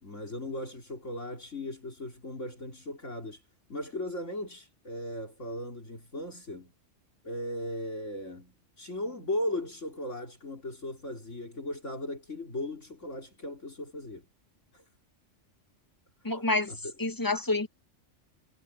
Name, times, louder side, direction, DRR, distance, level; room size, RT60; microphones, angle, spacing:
voice 1, 0.0-3.4 3.7-6.7 7.2-14.3 14.7-14.8 16.2-16.3 16.7-16.9, left 1 dB, 75° left, 4.5 m, -37 dB
voice 2, 16.2-16.7 17.0-17.7, left 2 dB, 15° left, 1.2 m, -28 dB
omnidirectional pair, 1.3 m